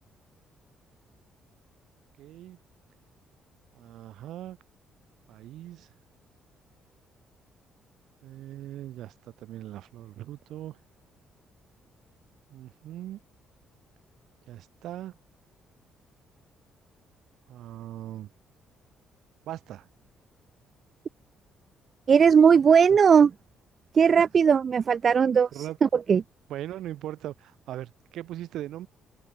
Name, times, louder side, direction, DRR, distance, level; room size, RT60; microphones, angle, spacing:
voice 1, 2.2-2.6 3.7-4.6 5.3-5.9 8.2-10.8 12.5-13.2 14.5-15.2 17.5-18.3 19.5-19.9 22.9-23.0 25.5-25.8 26.5-28.9, right 13 dB, 80° right, 0.7 m, -39 dB
voice 2, 22.1-23.3 23.9-26.2, right 6 dB, 45° right, 0.3 m, -19 dB
cardioid pair, 90°, 0 cm